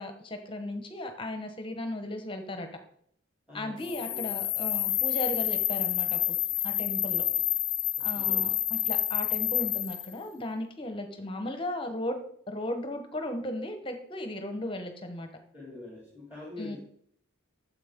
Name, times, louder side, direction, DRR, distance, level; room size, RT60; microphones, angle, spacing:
voice 1, 0.0-2.7 3.5-6.4 6.6-7.2 8.0-12.2 12.5-15.3 16.6-16.8, left 1 dB, 25° left, 6 dB, 1.0 m, -36 dB
voice 2, 3.5-4.2 8.0-8.5 15.5-16.8, left 2 dB, 5° right, -6 dB, 2.4 m, -44 dB
sound 1, 3.8-10.1, left 15 dB, 60° left, 0.6 m, -29 dB
9.3 x 7.4 x 3.6 m, 0.65 s
head